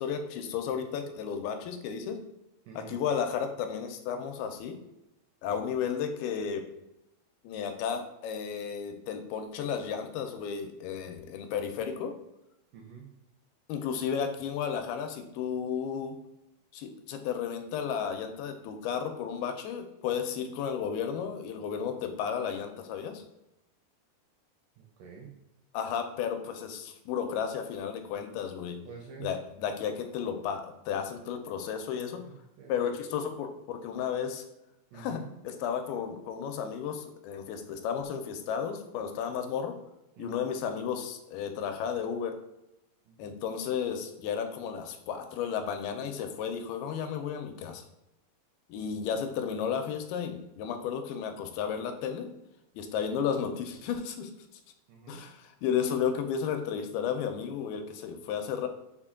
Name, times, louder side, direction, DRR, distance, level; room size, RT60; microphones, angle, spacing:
voice 1, 0.0-2.2 2.8-4.8 5.4-6.6 7.4-12.1 13.7-16.2 16.7-23.2 25.7-28.8 29.2-32.2 32.7-34.4 34.9-39.8 40.2-42.4 43.2-47.9 48.7-52.3 52.8-54.3 55.1-58.7, left 7 dB, 85° left, 6 dB, 2.4 m, -33 dB
voice 2, 2.7-3.0 12.7-13.1 24.8-25.4 28.8-29.3 32.2-32.9 34.9-35.3 40.2-40.4 43.1-43.4 54.9-55.3, right 6 dB, 80° right, 0 dB, 2.0 m, -47 dB
5.9 x 2.2 x 3.5 m, 0.90 s
omnidirectional pair, 4.3 m